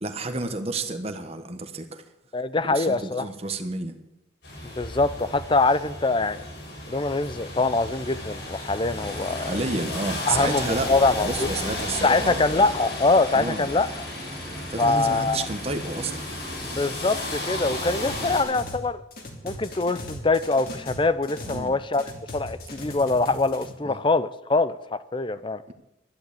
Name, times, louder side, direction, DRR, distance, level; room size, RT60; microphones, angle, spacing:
voice 1, 0.0-2.0 2.7-3.9 9.4-10.9 11.2-12.4 13.3-13.7 14.7-16.2 18.2-18.3 21.5-21.7 23.8-24.0 25.7-25.8, right 3 dB, 35° right, 1.3 m, -30 dB
voice 2, 2.3-3.3 4.6-6.4 6.9-9.7 10.3-11.5 12.0-13.9 14.8-15.4 16.6-19.0 19.4-22.0 22.3-25.6, left 3 dB, 30° left, 0.6 m, -24 dB
sound 1, 4.4-18.4, left 1 dB, 70° left, 7.5 m, -34 dB
sound 2, 9.0-18.4, equal, 5° left, 1.3 m, -43 dB
sound 3, 18.0-18.8 19.1-21.7 21.9-23.7, left 1 dB, 55° left, 3.0 m, -38 dB
12.0 x 11.0 x 8.4 m
head